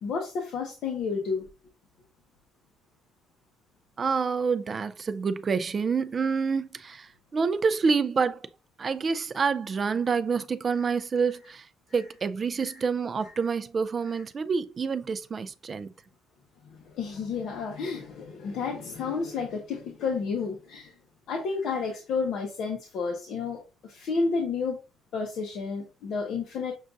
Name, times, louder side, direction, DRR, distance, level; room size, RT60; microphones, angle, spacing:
voice 1, 0.0-1.5 16.8-20.9 21.3-24.8 25.1-26.7, left 4 dB, 65° left, 0.8 m, -31 dB
voice 2, 4.0-8.5 8.8-15.9, right 5 dB, 35° right, 0.3 m, -27 dB
6.3 x 2.4 x 2.5 m
cardioid pair, 130°, 0 cm